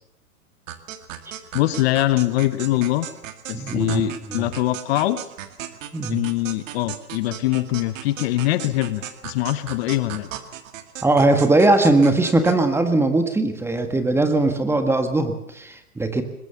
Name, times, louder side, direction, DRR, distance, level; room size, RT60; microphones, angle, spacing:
sound 1, 0.7-12.6, right 11 dB, 60° right, 2.2 m, -37 dB
voice 1, 1.5-3.1 3.5-5.2 6.1-10.3, left 16 dB, 45° left, 13 dB, 1.1 m, -23 dB
voice 2, 3.5-4.0 4.3-4.5 5.9-6.2 11.0-16.2, right 2 dB, 5° right, 7 dB, 1.6 m, -20 dB
22.0 x 20.5 x 7.0 m, 0.80 s
hypercardioid pair, 135°, 45 cm